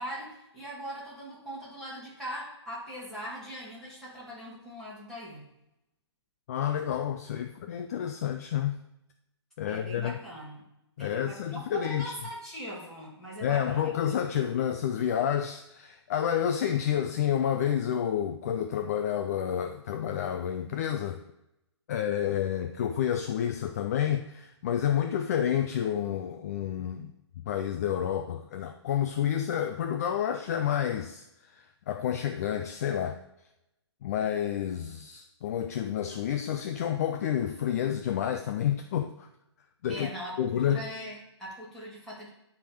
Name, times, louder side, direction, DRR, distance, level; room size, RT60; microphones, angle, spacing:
voice 1, 0.0-5.4 9.6-10.7 11.0-13.9 14.3-14.4 39.9-42.3, equal, ahead, -9 dB, 2.4 m, -41 dB
voice 2, 6.5-8.7 9.6-10.2 11.0-12.1 13.4-21.2 21.9-33.2 34.0-39.3 39.8-40.1 40.4-40.9, left 9 dB, 35° left, 7 dB, 0.4 m, -29 dB
10.5 x 3.6 x 5.0 m, 0.86 s
hypercardioid pair, 150°, 15 cm